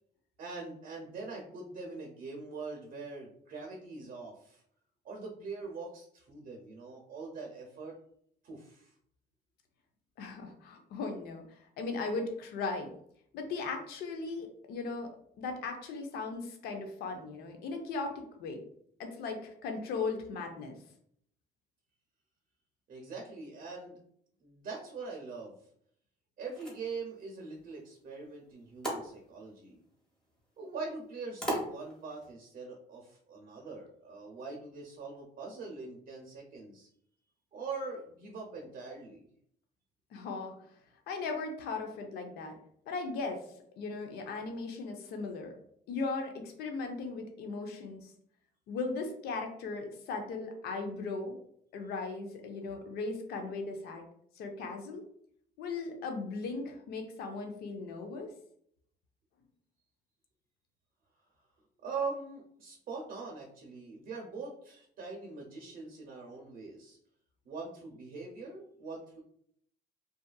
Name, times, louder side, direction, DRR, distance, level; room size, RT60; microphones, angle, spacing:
voice 1, 0.4-4.6 5.0-8.0 8.4-8.9 22.9-24.0 24.4-25.6 26.4-29.8 30.6-36.9 37.5-39.2 61.8-67.0 67.5-69.2, right 4 dB, 55° right, 0 dB, 0.6 m, -42 dB
voice 2, 10.2-12.9 13.3-15.1 15.4-18.6 19.0-20.8 40.1-40.5 41.1-42.6 42.9-43.4 43.8-45.5 45.9-48.1 48.7-51.4 51.7-54.0 54.4-55.0 55.6-58.3, left 3 dB, 70° left, 4 dB, 0.5 m, -37 dB
sound 1, 26.4-32.3, right 1 dB, 5° left, 1.0 m, -42 dB
2.7 x 2.4 x 2.2 m, 0.66 s
cardioid pair, 110°, 17 cm